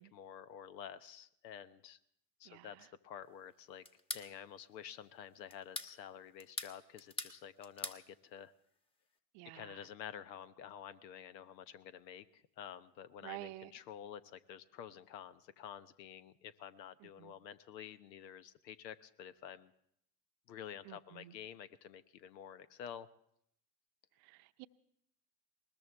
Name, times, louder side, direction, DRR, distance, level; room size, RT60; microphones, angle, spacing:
voice 1, 0.0-2.0 2.4-3.8 4.1-8.5 9.5-19.7 20.5-23.1, left 9 dB, 80° left, 14 dB, 1.0 m, -50 dB
voice 2, 2.4-2.9 9.3-9.9 13.2-13.7 17.0-17.3 20.8-21.3 24.2-24.7, right 18 dB, 55° right, 12 dB, 0.8 m, -51 dB
sound 1, 3.9-4.3 5.5-5.9 6.4-7.4 7.6-8.0, left 1 dB, 10° left, 1.3 m, -42 dB
21.0 x 19.5 x 3.5 m, 0.71 s
hypercardioid pair, 85°, 50 cm